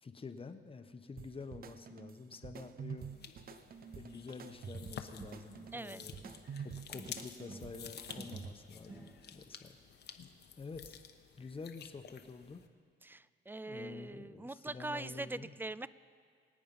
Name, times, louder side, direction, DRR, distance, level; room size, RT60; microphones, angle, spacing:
voice 1, 0.0-3.1 4.0-6.2 6.6-9.8 10.6-11.0 11.4-12.6 13.7-15.5, left 4 dB, 25° left, 8 dB, 1.0 m, -48 dB
sound 1, 1.2-8.8, right 7 dB, 50° right, 0.7 m, -48 dB
sound 2, 3.0-12.7, left 8 dB, 55° left, 1.0 m, -51 dB
sound 3, 4.8-6.6 6.9-9.5, right 2 dB, 30° right, 1.8 m, -54 dB
voice 2, 5.7-6.0 13.0-15.9, right 2 dB, 10° right, 17 dB, 0.4 m, -42 dB
24.0 x 8.6 x 5.4 m, 2.2 s
cardioid pair, 90°, 20 cm